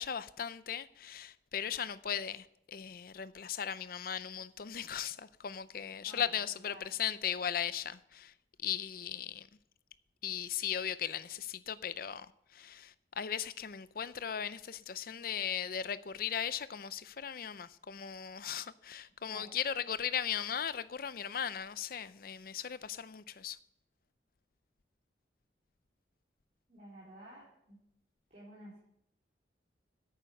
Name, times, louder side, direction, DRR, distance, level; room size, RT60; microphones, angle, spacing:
voice 1, 0.0-9.5 10.2-23.6, left 8 dB, 55° left, 0.5 m, -38 dB
voice 2, 26.7-27.8 28.3-28.8, right 1 dB, 40° right, 3.9 m, -52 dB
11.0 x 8.8 x 6.4 m
head